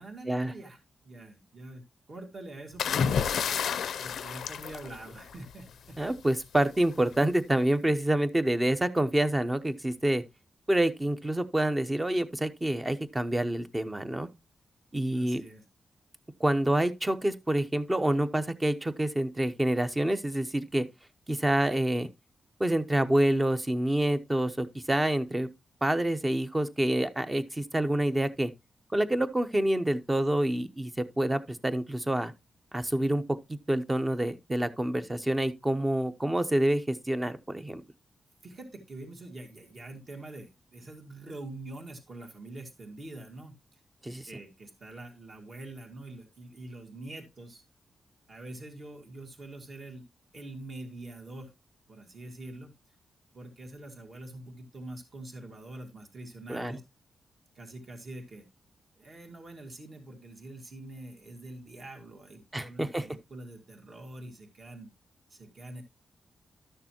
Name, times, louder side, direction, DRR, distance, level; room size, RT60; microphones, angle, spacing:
voice 1, 0.0-1.8 2.1-3.3 4.0-6.0 15.1-15.6 38.4-43.8 44.3-47.6 48.3-50.0 50.3-51.5 51.9-52.7 53.3-56.8 57.6-58.4 59.0-64.9 65.3-65.8, right 2 dB, 45° right, 2.0 m, -45 dB
sound 1, 2.8-5.5 6.8-7.1, left 7 dB, 85° left, 0.5 m, -30 dB
voice 2, 6.0-10.2 10.7-14.3 14.9-15.4 16.4-20.9 21.3-22.1 22.6-25.5 25.8-28.5 28.9-32.3 32.7-33.2 33.5-37.8 44.0-44.3 56.5-56.8 62.5-63.0, right 1 dB, 15° right, 0.7 m, -27 dB
12.0 x 6.7 x 2.9 m
cardioid pair, 110°, 0 cm